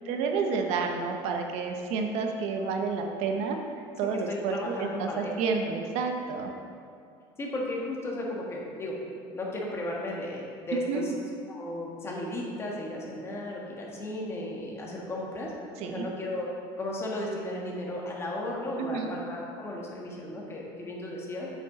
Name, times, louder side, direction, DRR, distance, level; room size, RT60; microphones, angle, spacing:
voice 1, 0.0-3.6 4.0-6.5 10.7-11.1 15.8-16.1 18.8-19.1, right 5 dB, 65° right, 3 dB, 0.8 m, -30 dB
voice 2, 4.3-5.3 7.4-8.9 9.3-11.1 11.5-15.5 15.8-16.5 16.8-21.5, left 1 dB, 20° left, -3 dB, 1.6 m, -35 dB
8.2 x 6.2 x 4.0 m, 2.4 s
supercardioid pair, 125°, 12 cm